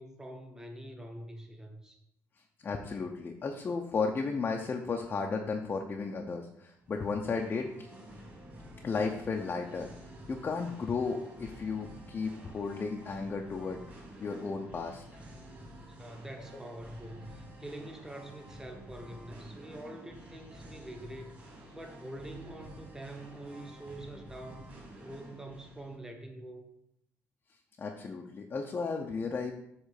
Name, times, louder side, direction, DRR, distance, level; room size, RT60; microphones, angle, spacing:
voice 1, 0.0-2.0 15.9-24.7 25.0-26.7, right 1 dB, 10° right, 3 dB, 1.1 m, -45 dB
voice 2, 2.6-7.9 8.8-9.9 10.3-13.8 14.2-15.0 27.8-29.5, left 4 dB, 30° left, 2 dB, 0.7 m, -34 dB
Singing, 6.8-25.9, equal, 25° right, 2.5 m, -50 dB
8.1 x 3.3 x 6.5 m, 0.77 s
cardioid pair, 130°, 6 cm